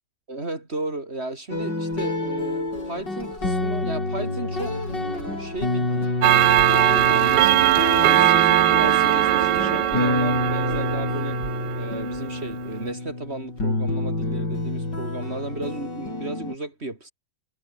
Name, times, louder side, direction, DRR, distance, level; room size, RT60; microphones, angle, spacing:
voice 1, 0.3-4.8 5.0-6.1 6.7-11.4 11.7-17.1, right 2 dB, 35° right, 3.5 m, -34 dB
sound 1, 1.5-16.5, left 2 dB, 85° left, 8.0 m, -28 dB
Clock, 6.2-12.2, right 13 dB, 80° right, 1.3 m, -20 dB
omnidirectional pair, 1.8 m